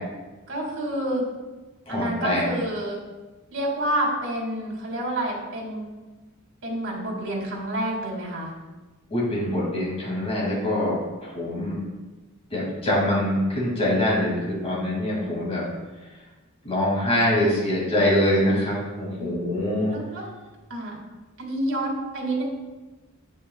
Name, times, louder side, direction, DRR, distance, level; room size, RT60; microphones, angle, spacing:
voice 1, 0.5-1.2 1.9-3.0 3.5-5.9 6.6-8.5 19.2-19.5 19.9-20.3 20.7-21.0 21.4-22.4, right 1 dB, 65° right, -1 dB, 2.3 m, -28 dB
voice 2, 1.9-2.5 9.1-10.9 11.2-11.8 12.5-15.7 16.6-19.9, left 1 dB, 30° left, -5 dB, 2.3 m, -24 dB
9.1 x 8.2 x 2.3 m, 1.2 s
head